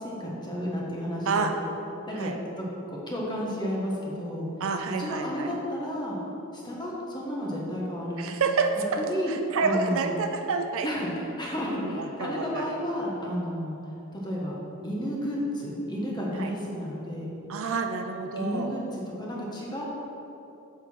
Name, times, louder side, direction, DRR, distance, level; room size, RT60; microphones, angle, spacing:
voice 1, 0.0-1.5 2.1-2.3 2.6-4.5 5.0-6.2 6.5-8.3 8.8-9.3 9.6-10.1 10.8-13.8 14.1-14.6 14.8-17.3 18.4-19.8, equal, 20° left, -4 dB, 1.3 m, -32 dB
voice 2, 4.6-5.5 8.2-9.0 9.3-10.9 11.6-12.6 16.4-16.5 17.5-18.8, right 4 dB, 65° right, 5 dB, 0.5 m, -29 dB
7.1 x 3.8 x 6.1 m, 2.9 s
head